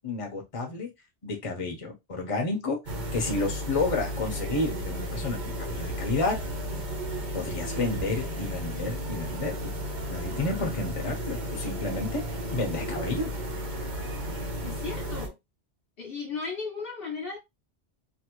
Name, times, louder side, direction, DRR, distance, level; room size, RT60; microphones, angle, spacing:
voice 1, 0.0-0.9 1.2-2.8 3.1-6.4 7.3-9.7 10.1-12.2 12.5-13.3, left 3 dB, 35° left, 0.9 m, -30 dB
sound 1, 2.9-15.3, equal, 45° right, 0.9 m, -33 dB
voice 2, 14.6-15.4 16.0-17.4, left 4 dB, 60° left, 1.0 m, -35 dB
2.8 x 2.7 x 3.0 m
omnidirectional pair, 1.1 m